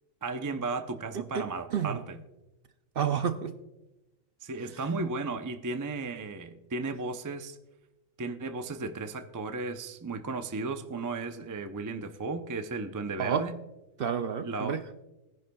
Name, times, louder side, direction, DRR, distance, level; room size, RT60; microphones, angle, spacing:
voice 1, 0.2-2.2 4.4-7.6 8.2-13.6 14.4-15.0, right 3 dB, 30° right, 0.3 m, -35 dB
voice 2, 1.1-2.0 3.0-3.5 13.2-13.5 14.0-14.8, right 7 dB, 60° right, 0.7 m, -30 dB
20.0 x 10.5 x 2.3 m
omnidirectional pair, 1.4 m